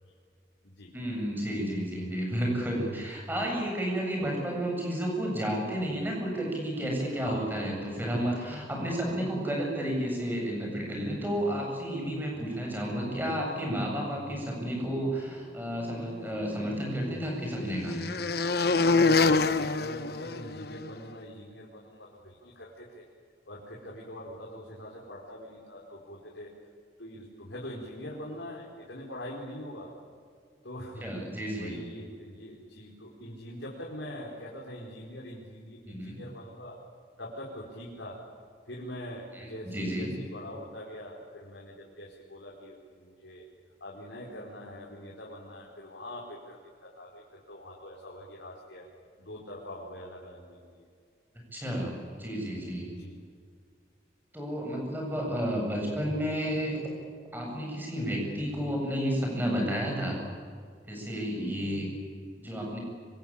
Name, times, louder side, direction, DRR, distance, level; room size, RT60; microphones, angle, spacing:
voice 1, 0.9-18.0 31.0-31.8 35.9-36.2 39.3-40.1 51.5-52.9 54.3-56.8 57.3-60.2 60.9-61.9 62.4-62.8, equal, 10° right, 0 dB, 7.8 m, -31 dB
voice 2, 7.1-7.6 8.8-9.1 12.3-12.4 19.0-23.0 23.5-26.5 27.0-29.9 30.6-31.1 31.6-36.8 37.2-38.2 38.7-43.4 43.8-48.9 49.2-50.9 52.8-53.3, left 1 dB, 80° left, -3 dB, 4.9 m, -43 dB
sound 1, 16.3-20.9, left 4 dB, 60° left, 1.1 m, -27 dB
25.5 x 25.5 x 8.8 m, 2.1 s
head